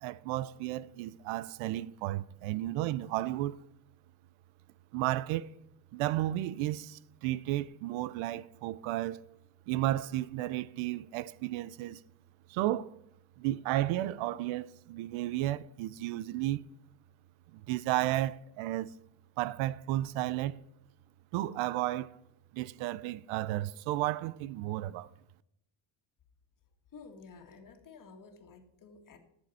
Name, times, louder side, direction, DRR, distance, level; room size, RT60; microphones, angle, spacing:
voice 1, 0.0-3.6 4.9-5.5 5.9-9.2 9.7-12.0 12.5-12.9 13.4-16.6 17.5-18.9 19.4-20.6 21.3-22.2 22.5-25.1, right 15 dB, 80° right, 0.7 m, -33 dB
voice 2, 26.9-29.2, left 4 dB, 40° left, 2.0 m, -52 dB
11.5 x 7.1 x 4.2 m
cardioid pair, 105°, 48 cm